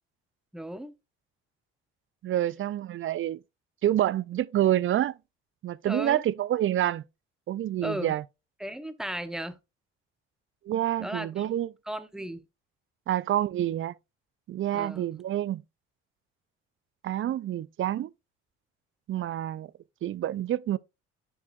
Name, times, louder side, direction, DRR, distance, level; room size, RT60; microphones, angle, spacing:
voice 1, 0.5-1.0 5.8-6.2 7.8-8.1 8.6-9.6 11.0-11.5 11.9-12.4 14.7-15.0, right 1 dB, ahead, 0.8 m, -35 dB
voice 2, 2.2-3.4 3.8-5.1 5.6-7.0 7.5-8.2 10.7-11.7 13.1-13.9 14.5-15.6 17.0-18.1 19.1-19.7 20.0-20.8, right 12 dB, 40° right, 0.4 m, -27 dB
9.7 x 4.7 x 2.4 m
hypercardioid pair, 60°, 32 cm